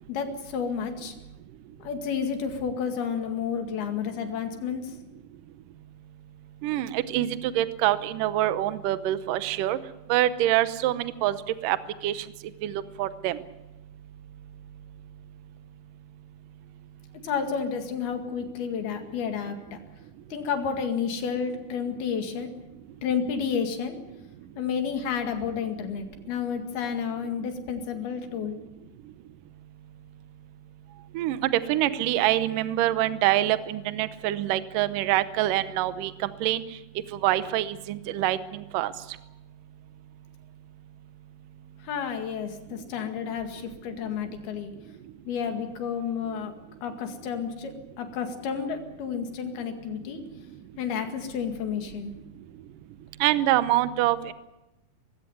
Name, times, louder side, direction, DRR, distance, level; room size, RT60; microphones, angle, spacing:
voice 1, 0.1-1.2 1.8-4.9 17.2-19.6 20.3-22.5 23.0-24.0 24.6-28.6 41.8-44.7 45.3-46.5 46.8-50.2 50.8-52.1, left 6 dB, 85° left, 6 dB, 4.1 m, -31 dB
voice 2, 6.6-9.8 10.1-11.4 11.6-11.8 12.0-12.3 12.6-13.4 31.2-36.6 37.1-38.9 53.2-54.3, right 14 dB, 75° right, 13 dB, 2.3 m, -25 dB
21.0 x 16.0 x 9.7 m, 0.96 s
omnidirectional pair, 4.3 m